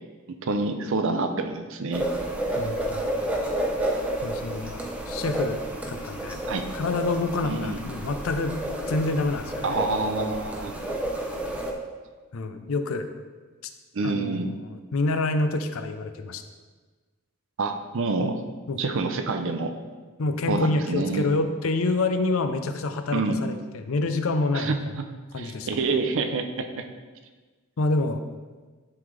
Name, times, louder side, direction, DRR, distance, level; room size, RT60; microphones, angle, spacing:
voice 1, 0.4-2.1 6.5-6.6 7.4-7.8 9.6-10.7 13.9-14.5 17.6-18.4 18.8-19.7 20.5-21.3 23.1-23.4 24.5-25.0 25.4-26.8, right 3 dB, 60° right, 7 dB, 0.5 m, -27 dB
sound 1, 1.9-11.7, right 1 dB, 5° right, 0.6 m, -30 dB
voice 2, 2.6-3.1 4.2-5.6 5.9-6.4 6.7-8.5 8.9-9.8 12.3-13.1 14.0-14.4 14.7-16.4 18.7-18.8 20.2-24.7 25.3-25.7 27.8-28.2, left 2 dB, 65° left, 8 dB, 0.5 m, -27 dB
10.5 x 3.8 x 3.3 m, 1.4 s
head